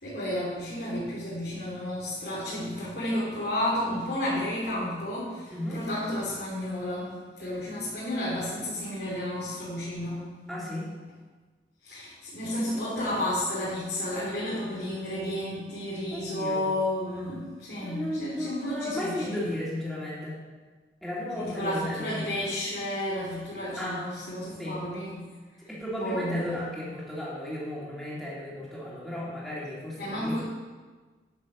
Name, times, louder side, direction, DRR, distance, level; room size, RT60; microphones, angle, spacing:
voice 1, 0.0-10.3 11.8-19.5 21.3-25.2 26.0-26.6 29.9-30.4, left 1 dB, 65° left, -9 dB, 3.6 m, -32 dB
voice 2, 5.5-5.8 7.4-7.6 10.5-10.9 16.1-16.7 17.8-20.4 21.0-22.2 23.8-24.0 24.6-24.8 25.7-30.4, left 1 dB, ahead, -7 dB, 2.9 m, -34 dB
11.0 x 6.6 x 7.0 m, 1.4 s
head